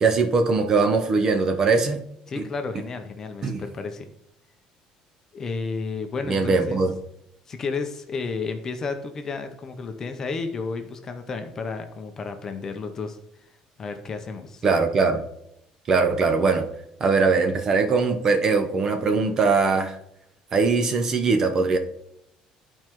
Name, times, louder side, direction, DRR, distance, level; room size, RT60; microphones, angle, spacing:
voice 1, 0.0-2.1 2.4-2.5 3.4-3.6 6.3-6.9 14.6-15.2 15.9-16.6 17.0-19.9 20.5-21.8, right 4 dB, 25° right, 6 dB, 0.5 m, -21 dB
voice 2, 2.3-4.1 5.3-6.8 7.5-13.2 13.8-14.7, left 4 dB, 25° left, 6 dB, 0.6 m, -32 dB
11.5 x 4.5 x 3.0 m, 0.77 s
cardioid pair, 180°, 2 cm